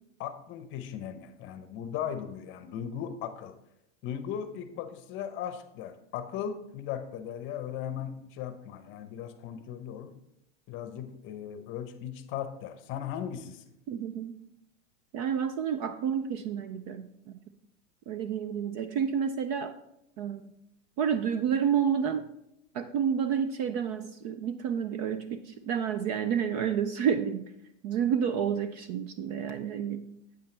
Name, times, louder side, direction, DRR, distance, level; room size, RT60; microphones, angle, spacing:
voice 1, 0.2-3.6 4.0-10.1 10.7-13.7, left 9 dB, 30° left, 10 dB, 0.8 m, -37 dB
voice 2, 13.9-14.3 15.1-17.4 18.1-19.7 20.2-20.4 21.0-22.3 22.7-27.5 27.8-30.1, right 8 dB, 35° right, 11 dB, 0.4 m, -30 dB
8.8 x 8.3 x 3.3 m, 0.82 s
supercardioid pair, 135°, 38 cm